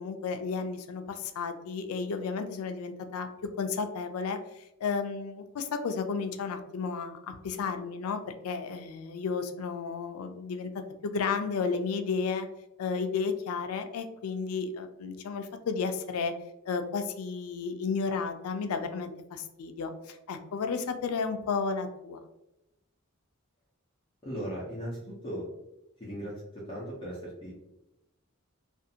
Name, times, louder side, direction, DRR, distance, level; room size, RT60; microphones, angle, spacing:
voice 1, 0.0-10.7 11.0-12.5 12.8-16.3 16.7-22.2, left 5 dB, 85° left, 8 dB, 0.4 m, -33 dB
voice 2, 24.2-25.4 26.0-26.3 26.7-27.5, equal, 25° left, -8 dB, 0.6 m, -37 dB
2.6 x 2.4 x 2.7 m, 0.89 s
head